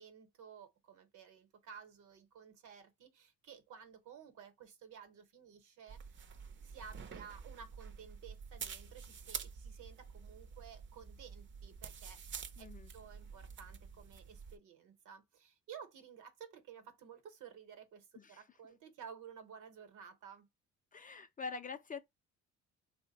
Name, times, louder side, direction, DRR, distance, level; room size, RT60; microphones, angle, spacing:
voice 1, 0.0-6.3 6.6-12.2 12.6-20.5, right 7 dB, 80° right, 0.9 m, -54 dB
sound 1, 5.9-14.6, right 6 dB, 40° right, 0.5 m, -48 dB
voice 2, 12.6-12.9 18.1-18.4 20.9-22.0, left 5 dB, 30° left, 0.4 m, -45 dB
3.2 x 2.1 x 3.8 m
cardioid pair, 90°, 30 cm